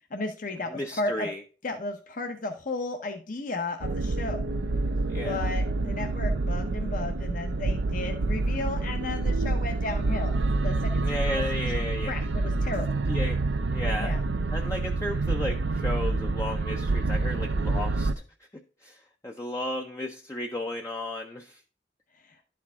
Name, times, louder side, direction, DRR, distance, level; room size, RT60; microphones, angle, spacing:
voice 1, 0.1-1.3 1.6-4.5 5.2-10.3 10.6-11.4 12.1-13.0 14.0-14.2 22.2-22.4, left 2 dB, 50° left, 4 dB, 0.9 m, -34 dB
voice 2, 0.7-1.4 5.1-5.5 11.0-12.1 13.1-13.4 13.7-14.2 14.5-18.1 18.4-18.5 18.8-21.6, left 1 dB, 15° left, 2 dB, 0.6 m, -34 dB
sound 1, 3.8-18.1, right 3 dB, 85° right, 0.6 m, -27 dB
11.5 x 4.6 x 3.6 m, 0.37 s
head